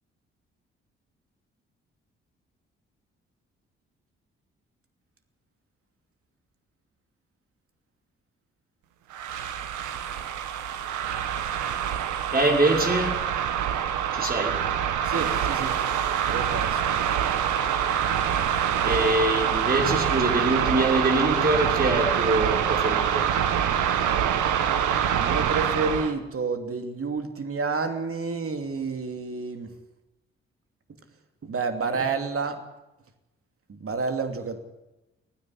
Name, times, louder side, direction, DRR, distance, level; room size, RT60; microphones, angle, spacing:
sound 1, 9.1-26.1, right 9 dB, 70° right, 1.5 m, -25 dB
voice 1, 12.3-13.2 14.1-14.6 18.8-23.3, right 2 dB, 30° right, 1 dB, 6.4 m, -24 dB
voice 2, 15.0-15.8 16.3-16.9 25.1-29.7 31.4-32.6 33.7-34.6, right 4 dB, 45° right, 6 dB, 2.8 m, -29 dB
29.5 x 10.0 x 9.9 m, 1.0 s
hypercardioid pair, 40°, 31 cm